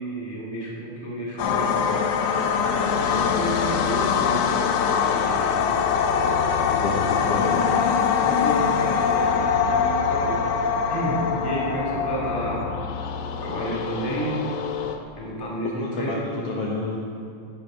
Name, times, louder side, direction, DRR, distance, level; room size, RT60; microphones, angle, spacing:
voice 1, 0.0-2.1 2.9-5.6 5.9-6.1 8.2-10.5 10.9-12.7 13.4-14.5 15.1-16.3, right 1 dB, 10° left, -5 dB, 1.6 m, -31 dB
sound 1, 1.4-15.0, left 6 dB, 80° left, 2.1 m, -23 dB
voice 2, 6.8-7.8 15.7-16.2 16.4-17.0, left 3 dB, 65° left, -3 dB, 1.7 m, -29 dB
12.0 x 7.1 x 5.1 m, 2.5 s
omnidirectional pair, 3.5 m